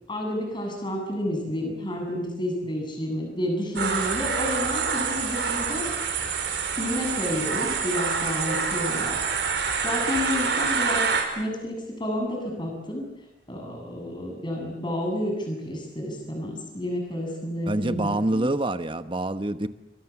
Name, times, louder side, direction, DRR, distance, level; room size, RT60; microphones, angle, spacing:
voice 1, 0.1-5.9 6.7-11.0 11.3-13.1 13.5-18.5, left 1 dB, 25° left, 3 dB, 7.5 m, -30 dB
sound 1, 3.8-11.2, right 5 dB, 75° right, 5.4 m, -26 dB
voice 2, 17.6-19.7, right 1 dB, 30° right, 11 dB, 1.1 m, -26 dB
29.0 x 24.0 x 7.2 m, 0.92 s
head